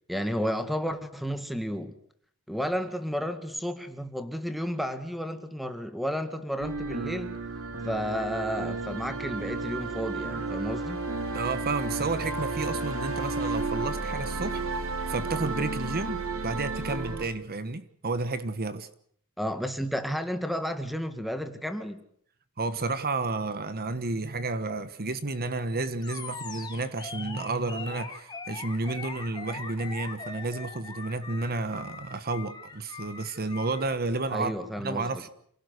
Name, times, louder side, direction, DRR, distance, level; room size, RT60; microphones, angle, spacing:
voice 1, 0.1-2.0 2.5-7.4 7.8-11.1 19.4-22.0 34.3-35.3, equal, ahead, 2.0 m, -32 dB
sound 1, 6.6-17.3, right 3 dB, 65° right, 3.2 m, -32 dB
voice 2, 11.3-18.9 22.6-34.5 34.8-35.3, right 3 dB, 45° right, 1.4 m, -31 dB
Animal, 26.0-34.0, left 4 dB, 20° left, 3.3 m, -41 dB
28.0 x 18.0 x 8.2 m
head